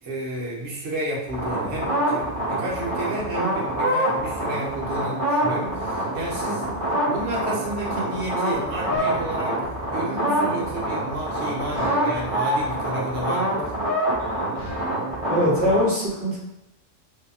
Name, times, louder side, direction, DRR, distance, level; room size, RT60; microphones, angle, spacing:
voice 1, 0.0-6.7 7.1-9.6 9.9-13.7, right 1 dB, 60° right, -4 dB, 1.0 m, -31 dB
sound 1, 1.3-15.8, right 1 dB, 30° right, 0.9 m, -26 dB
sound 2, 7.7-15.5, equal, 50° left, 0.8 m, -40 dB
voice 2, 15.3-16.4, equal, 10° right, -9 dB, 1.0 m, -21 dB
2.7 x 2.5 x 2.3 m, 0.93 s
omnidirectional pair, 1.3 m